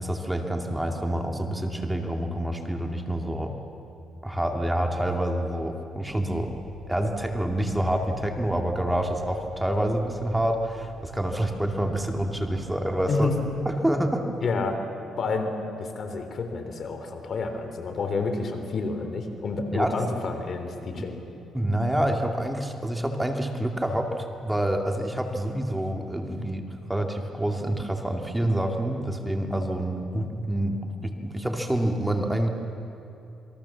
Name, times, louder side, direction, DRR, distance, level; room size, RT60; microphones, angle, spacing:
voice 1, 0.0-3.5 4.2-6.6 6.9-13.3 13.7-14.3 19.7-20.0 21.0-21.1 21.5-32.5, right 1 dB, 5° right, 3 dB, 2.4 m, -27 dB
sound 1, 6.1-13.8, right 9 dB, 60° right, 4.0 m, -49 dB
voice 2, 14.4-14.8 15.2-21.2, left 3 dB, 55° left, 6 dB, 3.4 m, -29 dB
28.0 x 22.5 x 7.3 m, 2.8 s
cardioid pair, 90°, 0 cm